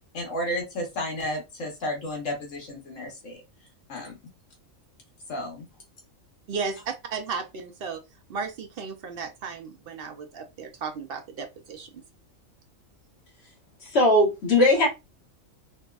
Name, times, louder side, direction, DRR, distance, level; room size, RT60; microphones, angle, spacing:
voice 1, 0.1-3.4 3.9-4.2 5.3-5.7, left 1 dB, 65° left, 1.5 m, -32 dB
voice 2, 6.5-8.0 8.3-11.9, right 5 dB, 65° right, 0.6 m, -34 dB
voice 3, 13.8-14.9, left 1 dB, 50° left, 1.4 m, -19 dB
3.5 x 2.3 x 2.2 m
omnidirectional pair, 1.4 m